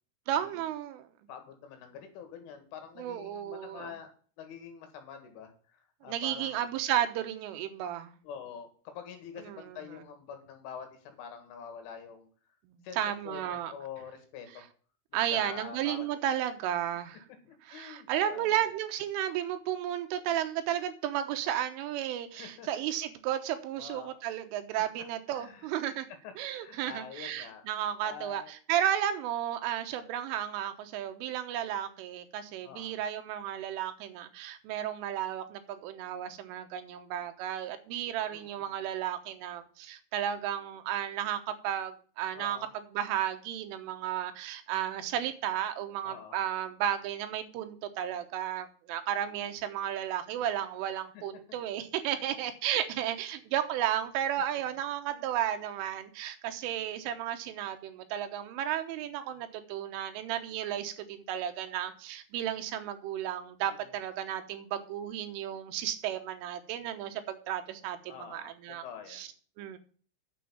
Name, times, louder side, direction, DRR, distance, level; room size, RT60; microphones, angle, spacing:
voice 1, 0.3-1.1 3.0-3.9 6.0-8.1 9.4-9.8 12.7-13.7 15.1-17.2 17.7-26.1 26.4-68.9 69.1-69.3 69.6-69.8, right 11 dB, 80° right, 7 dB, 3.6 m, -33 dB
voice 2, 1.3-4.1 4.4-6.8 8.2-12.3 12.8-13.0 13.2-14.6 15.1-16.4 17.4-18.7 22.3-22.7 23.8-24.1 25.3-26.0 26.2-27.6 28.0-28.5 32.6-33.0 38.3-38.6 42.4-42.7 46.0-46.4 51.1-51.6 52.1-52.2 55.1-55.2 63.6-63.9 68.1-68.5 68.8-69.3, left 7 dB, 75° left, 6 dB, 4.4 m, -46 dB
9.1 x 7.1 x 7.4 m, 0.43 s
omnidirectional pair, 5.7 m